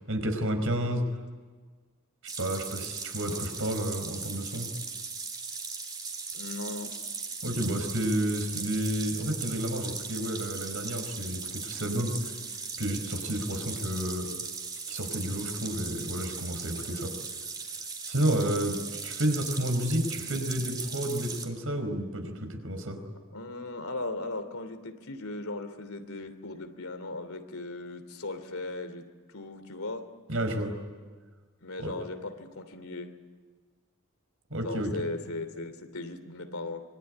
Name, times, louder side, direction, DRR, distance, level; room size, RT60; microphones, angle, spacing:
voice 1, 0.1-1.0 2.4-4.7 7.4-12.3 12.8-14.3 14.9-17.1 18.1-23.0 30.3-30.7 31.8-31.9 34.5-34.9, right 1 dB, 70° right, 6 dB, 4.9 m, -31 dB
sound 1, 2.3-21.4, right 4 dB, 20° right, 2.9 m, -38 dB
voice 2, 6.3-6.9 23.3-29.0 29.3-30.1 31.6-33.1 34.6-36.9, left 2 dB, 90° left, 8 dB, 3.0 m, -37 dB
25.5 x 23.0 x 10.0 m, 1.5 s
head